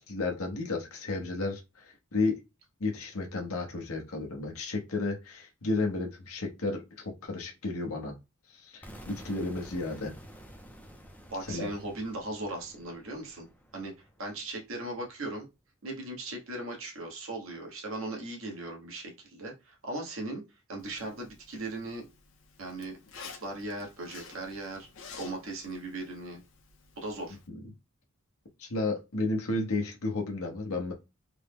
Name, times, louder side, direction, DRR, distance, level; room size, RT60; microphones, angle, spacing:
voice 1, 0.1-2.4 2.8-8.2 8.5-10.1 11.4-11.7 27.5-27.7 28.6-30.9, left 3 dB, 85° left, 0.9 m, -32 dB
sound 1, 8.8-14.7, equal, 5° left, 0.4 m, -50 dB
voice 2, 11.3-13.5 13.7-13.9 14.2-15.5 15.8-20.4 20.7-22.1 22.6-24.9 25.2-26.4 27.0-27.4, right 2 dB, 70° right, 1.2 m, -38 dB
Zipper (clothing), 20.8-27.5, left 5 dB, 60° left, 0.6 m, -51 dB
3.5 x 2.1 x 3.4 m
head